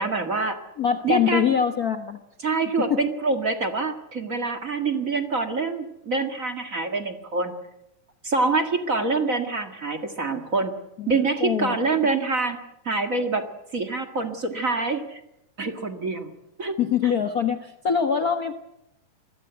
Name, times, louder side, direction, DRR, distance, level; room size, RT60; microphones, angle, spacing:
voice 1, 0.0-0.6 1.0-1.5 2.4-7.5 8.2-10.7 11.1-12.6 12.8-13.4 13.7-15.2 15.6-16.3 16.6-16.7 17.0-17.1, right 3 dB, 35° right, 7 dB, 1.6 m, -25 dB
voice 2, 0.8-2.2 2.9-3.1 11.0-11.1 11.4-11.8 16.8-18.5, left 7 dB, 80° left, 7 dB, 0.8 m, -23 dB
28.0 x 21.5 x 8.0 m, 0.84 s
omnidirectional pair, 3.7 m